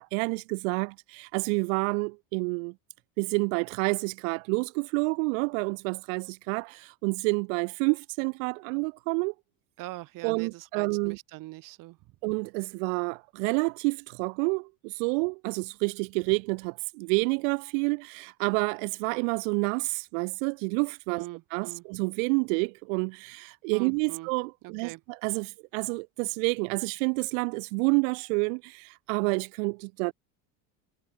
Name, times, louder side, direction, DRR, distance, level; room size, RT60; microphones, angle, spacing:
voice 1, 0.0-2.7 3.2-9.3 10.2-11.2 12.2-21.2 21.5-30.1, right 33 dB, 80° right, 2.3 m, -29 dB
voice 2, 9.8-12.0 21.1-21.8 23.7-24.3 24.6-25.0, right 20 dB, 60° right, 2.9 m, -41 dB
cardioid pair, 135°, 38 cm